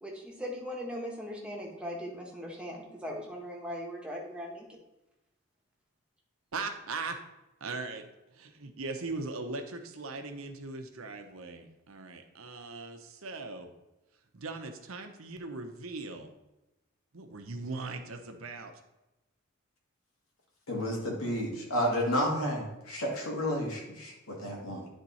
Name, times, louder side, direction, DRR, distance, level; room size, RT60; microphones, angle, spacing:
voice 1, 0.0-4.8, equal, 5° right, -2 dB, 1.2 m, -39 dB
voice 2, 6.5-7.1 7.6-8.0 8.3-13.7 14.3-16.3 17.1-18.7, right 3 dB, 75° right, 6 dB, 0.9 m, -39 dB
voice 3, 20.7-24.9, equal, 80° left, -1 dB, 2.0 m, -31 dB
10.0 x 3.7 x 4.1 m, 0.97 s
head